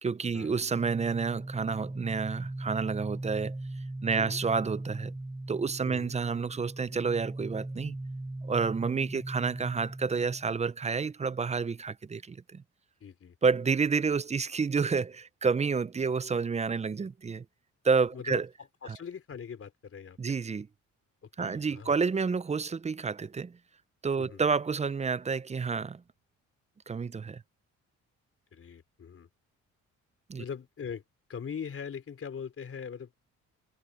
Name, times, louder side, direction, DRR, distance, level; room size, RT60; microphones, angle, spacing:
voice 1, 0.0-3.6 4.0-5.1 5.5-8.0 8.4-12.6 13.4-17.4 17.8-18.5 18.9-19.0 20.2-20.7 21.4-23.5 24.0-26.0 26.9-27.4 30.3-30.4, right 5 dB, 20° right, 0.5 m, -29 dB
sound 1, 0.7-10.5, right 2 dB, 5° right, 1.1 m, -39 dB
voice 2, 5.8-6.1 13.0-13.4 16.1-16.2 18.1-18.4 18.8-20.4 21.4-21.9 24.2-24.4 28.5-29.3 30.4-31.0 31.3-33.1, left 7 dB, 45° left, 4.0 m, -41 dB
cardioid pair, 90°, 30 cm